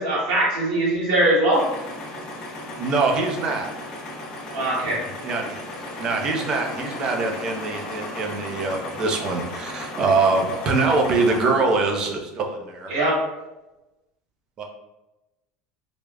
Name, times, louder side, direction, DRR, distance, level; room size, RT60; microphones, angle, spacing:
voice 1, 0.0-1.6 4.5-5.0 12.9-13.2, right 1 dB, 85° right, -7 dB, 1.4 m, -21 dB
sound 1, 1.5-11.5, left 1 dB, 40° left, 0.6 m, -35 dB
voice 2, 2.8-3.7 5.1-5.6 6.0-12.9 14.6-14.7, right 3 dB, 35° right, 2 dB, 0.5 m, -23 dB
3.3 x 2.0 x 2.3 m, 1.0 s
supercardioid pair, 135°, 2 cm